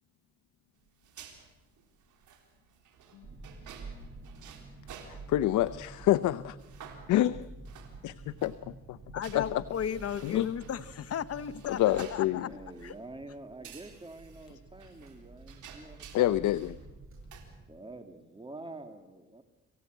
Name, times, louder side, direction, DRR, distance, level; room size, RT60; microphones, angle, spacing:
sound 1, 0.9-5.8 6.2-6.3 6.6-8.6 9.2-13.0 13.6-16.8 17.1-17.4, right 8 dB, 80° right, 3.7 m, -52 dB
sound 2, 3.2-17.6, right 3 dB, 45° right, 7.9 m, -49 dB
voice 1, 5.1-6.6 7.1-7.5 8.0-9.0 9.3-9.4 10.2-10.5 11.7-12.5 16.1-16.8, left 14 dB, 75° left, 0.7 m, -27 dB
voice 2, 9.1-12.5 12.8-12.9, left 8 dB, 55° left, 1.0 m, -35 dB
voice 3, 11.9-16.4 17.7-19.4, right 2 dB, 15° right, 2.3 m, -47 dB
27.0 x 15.5 x 8.1 m
cardioid pair, 90°, 30 cm